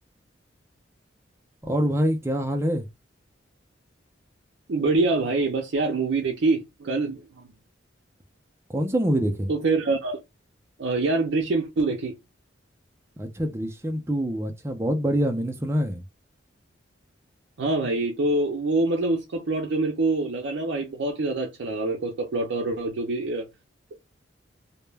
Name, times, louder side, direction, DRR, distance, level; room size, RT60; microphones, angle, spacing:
voice 1, 1.6-2.9 8.7-9.5 13.2-16.0, equal, 15° right, 0.4 m, -25 dB
voice 2, 4.7-7.3 9.5-10.2 10.8-12.2 17.6-23.4, right 3 dB, 70° right, 0.5 m, -25 dB
2.2 x 2.1 x 3.2 m
head